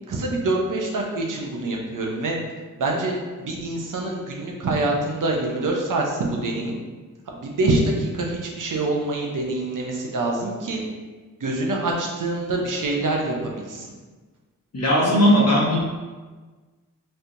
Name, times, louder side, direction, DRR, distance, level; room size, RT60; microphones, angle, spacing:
voice 1, 0.1-2.4 2.8-6.8 7.3-10.8 11.4-13.9, right 2 dB, 70° right, -1 dB, 0.8 m, -25 dB
voice 2, 14.7-15.8, equal, 50° left, -5 dB, 1.2 m, -17 dB
4.4 x 3.2 x 2.6 m, 1.3 s
wide cardioid pair, 120°, 33 cm